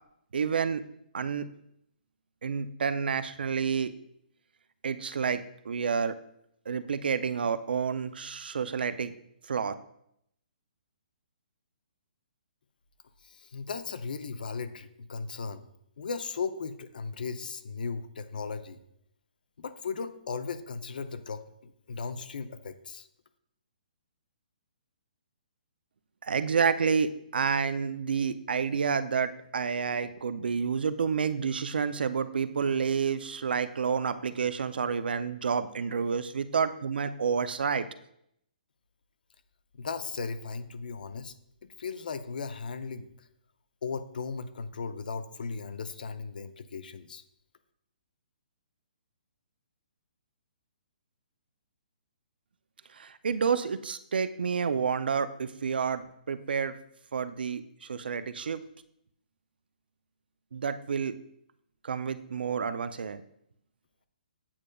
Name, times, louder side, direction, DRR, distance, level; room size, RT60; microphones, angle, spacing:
voice 1, 0.3-0.8 1.1-1.5 2.4-3.9 4.8-6.2 6.7-9.1 9.5-9.7 26.2-37.9 52.9-56.8 57.1-58.6 60.5-61.2 61.8-63.2, right 6 dB, 85° right, 13 dB, 0.4 m, -29 dB
voice 2, 13.2-15.7 16.0-18.8 19.6-23.1 39.7-41.3 41.6-43.1 43.8-47.2, left 5 dB, 65° left, 11 dB, 0.5 m, -37 dB
8.6 x 4.9 x 2.3 m, 0.74 s
hypercardioid pair, 175°, 5 cm